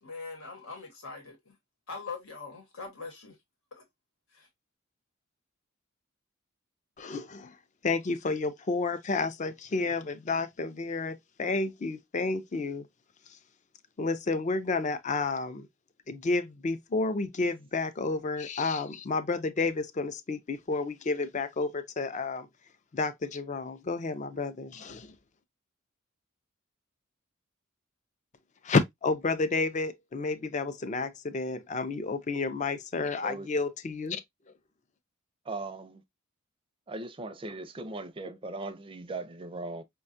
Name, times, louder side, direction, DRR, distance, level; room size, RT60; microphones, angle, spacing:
voice 1, 0.0-1.5 1.9-3.4 3.7-3.8 4.3-4.5, left 4 dB, 85° left, 1.2 m, -42 dB
voice 2, 7.0-7.6 7.8-12.9 14.0-15.7 16.1-22.5 22.9-25.1 28.6-34.2, left 3 dB, 35° left, 0.4 m, -31 dB
voice 3, 35.5-36.0 36.9-39.8, right 2 dB, 25° right, 0.4 m, -38 dB
5.4 x 2.2 x 2.5 m
head